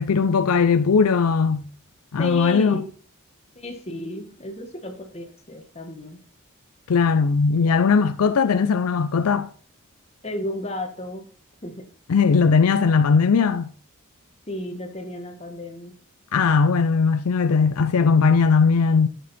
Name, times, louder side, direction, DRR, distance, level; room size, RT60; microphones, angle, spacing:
voice 1, 0.0-1.6 2.1-2.8 6.9-9.5 12.1-13.7 16.3-19.1, left 5 dB, 85° left, 0.5 m, -19 dB
voice 2, 2.2-2.9 3.5-6.2 10.2-11.3 11.6-11.8 14.5-15.9, left 1 dB, 30° left, 1.4 m, -33 dB
10.0 x 6.5 x 4.2 m
head